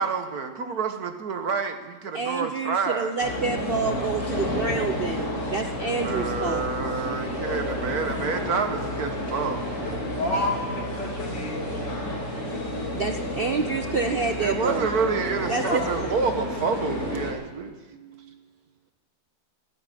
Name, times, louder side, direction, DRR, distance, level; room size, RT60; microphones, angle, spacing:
voice 1, 0.0-3.1 6.0-9.9 14.4-17.7, right 5 dB, 55° right, 7 dB, 1.5 m, -28 dB
voice 2, 2.1-6.7 12.9-14.9 15.5-16.1 17.9-18.2, right 4 dB, 90° right, 6 dB, 0.5 m, -28 dB
sound 1, 3.2-17.3, left 1 dB, 40° left, 3.1 m, -30 dB
voice 3, 9.8-12.2 13.2-13.4 15.6-15.9, left 1 dB, 70° left, 0 dB, 3.3 m, -31 dB
14.0 x 13.0 x 7.5 m, 1.3 s
omnidirectional pair, 2.0 m